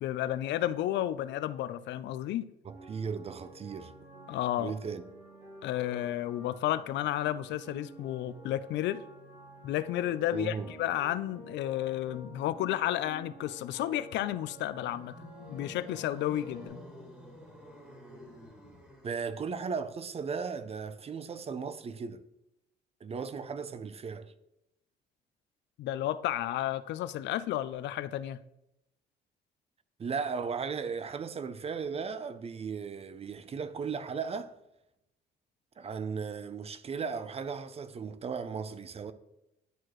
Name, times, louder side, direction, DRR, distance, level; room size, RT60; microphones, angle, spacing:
voice 1, 0.0-2.5 4.3-4.7 5.6-9.0 9.6-16.8 25.8-28.4, left 13 dB, 75° left, 0.4 m, -32 dB
voice 2, 2.7-3.9 4.6-5.0 10.3-10.7 19.0-22.2 23.0-24.3 30.0-34.6 35.8-39.1, right 5 dB, 35° right, 0.5 m, -36 dB
sound 1, 2.7-16.7, right 1 dB, 85° right, 2.9 m, -51 dB
sound 2, 14.9-19.5, left 1 dB, 5° right, 1.7 m, -50 dB
11.0 x 4.6 x 3.0 m
cardioid pair, 90°, 18 cm